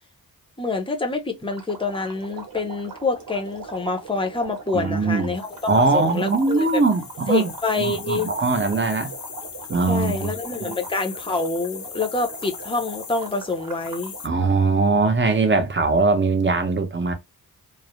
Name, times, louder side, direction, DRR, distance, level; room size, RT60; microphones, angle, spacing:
voice 1, 0.6-6.8 7.3-8.3 9.9-14.1, left 3 dB, 15° left, 0.5 m, -26 dB
sound 1, 1.5-14.3, right 4 dB, 65° right, 0.8 m, -40 dB
voice 2, 4.7-5.3 5.7-7.5 7.8-9.1 9.7-10.3 10.6-10.8 14.2-17.1, right 3 dB, 30° right, 0.6 m, -21 dB
sound 2, 5.4-14.3, left 7 dB, 60° left, 0.6 m, -39 dB
2.3 x 2.0 x 2.9 m
wide cardioid pair, 110°, 37 cm